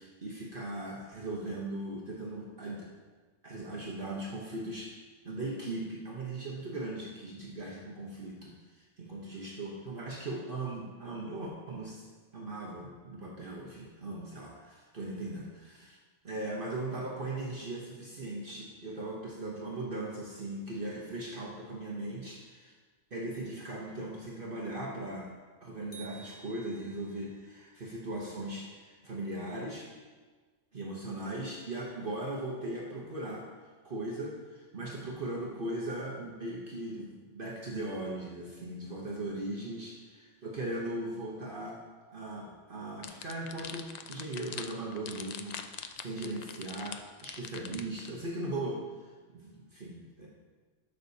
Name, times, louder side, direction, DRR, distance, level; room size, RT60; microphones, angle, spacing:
voice 1, 0.0-2.9 3.4-4.9 5.2-12.0 12.3-16.0 16.2-22.7 23.1-25.3 25.6-29.9 30.7-33.5 33.8-41.8 42.1-48.9 49.3-50.3, right 2 dB, 50° right, -4 dB, 1.2 m, -39 dB
sound 1, 25.9-27.3, right 5 dB, 55° left, 1.1 m, -52 dB
sound 2, 43.0-48.1, left 7 dB, 80° left, 0.3 m, -43 dB
12.0 x 6.6 x 2.8 m, 1.4 s
omnidirectional pair, 1.2 m